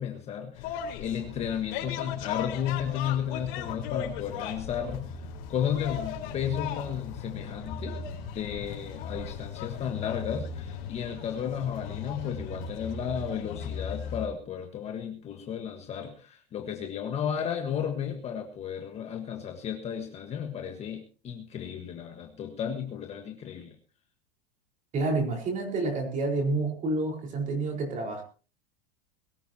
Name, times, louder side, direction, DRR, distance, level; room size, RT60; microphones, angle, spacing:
voice 1, 0.0-8.0 8.3-23.7, left 8 dB, 20° left, 4 dB, 1.5 m, -33 dB
sound 1, 0.5-14.3, left 7 dB, 50° left, 4.6 m, -37 dB
voice 2, 24.9-28.2, right 3 dB, 25° right, 3 dB, 4.7 m, -29 dB
22.0 x 14.5 x 2.9 m, 0.36 s
supercardioid pair, 170°, 31 cm